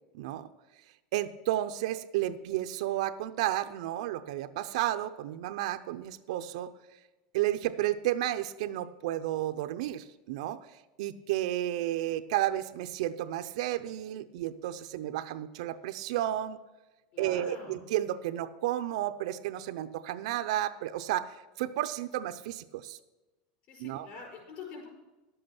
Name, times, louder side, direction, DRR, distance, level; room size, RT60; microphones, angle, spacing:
voice 1, 0.1-0.5 1.1-6.7 7.3-10.6 11.0-16.6 17.2-23.0 23.8-24.1, right 13 dB, 70° right, 10 dB, 0.6 m, -32 dB
voice 2, 17.1-17.8 23.7-24.9, left 4 dB, 40° left, 0 dB, 4.9 m, -45 dB
11.5 x 7.8 x 5.9 m, 1.1 s
supercardioid pair, 165°, 4 cm